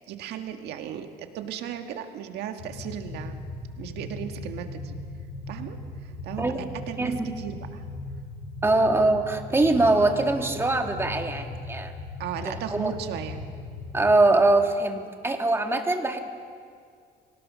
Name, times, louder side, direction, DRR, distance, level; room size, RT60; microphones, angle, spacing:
voice 1, 0.1-3.4 3.8-5.0 5.5-6.5 6.9-7.8 12.2-13.4, right 9 dB, 80° right, 6 dB, 1.7 m, -36 dB
sound 1, 2.6-14.2, left 2 dB, 80° left, 5.6 m, -38 dB
voice 2, 6.4-6.7 7.0-7.2 8.6-11.9 12.4-12.9 13.9-16.2, right 2 dB, 15° right, 4 dB, 2.0 m, -23 dB
25.5 x 18.0 x 6.3 m, 2.1 s
cardioid pair, 110°, 17 cm